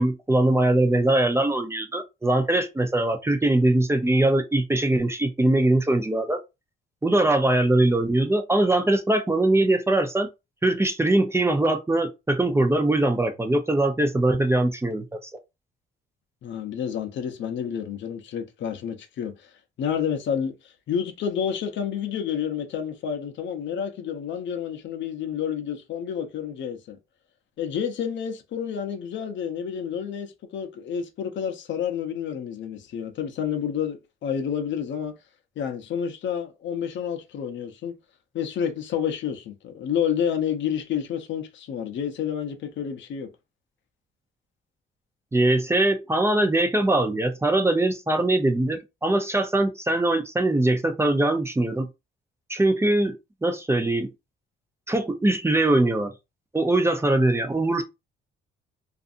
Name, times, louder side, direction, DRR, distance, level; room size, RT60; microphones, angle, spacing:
voice 1, 0.0-6.4 7.0-10.3 10.6-15.2 45.3-51.9 52.5-53.1 53.4-54.1 54.9-56.1 56.5-57.8, right 2 dB, 15° right, 0.5 m, -22 dB
voice 2, 16.4-19.5 19.8-27.0 27.6-35.1 35.6-37.9 38.3-43.3, left 8 dB, 70° left, 0.6 m, -29 dB
2.5 x 2.4 x 2.5 m
cardioid pair, 90°, 20 cm